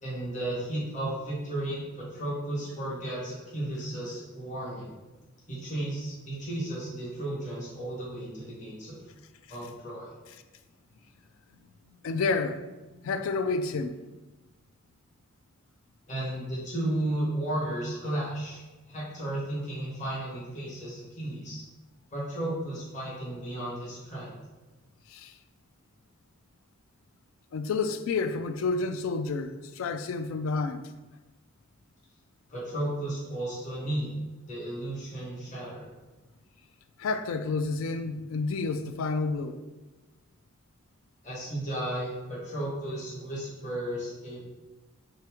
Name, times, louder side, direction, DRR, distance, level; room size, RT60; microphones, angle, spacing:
voice 1, 0.0-4.9 5.5-8.9 9.5-10.1 16.1-18.6 18.9-21.6 22.1-24.3 32.5-34.1 34.5-35.9 41.2-44.4, right 1 dB, 35° left, 1.3 m, -34 dB
voice 2, 12.0-12.7 13.0-14.0 25.1-25.3 27.5-30.9 37.0-39.6, left 4 dB, 70° left, 0.3 m, -30 dB
3.3 x 3.1 x 4.7 m
head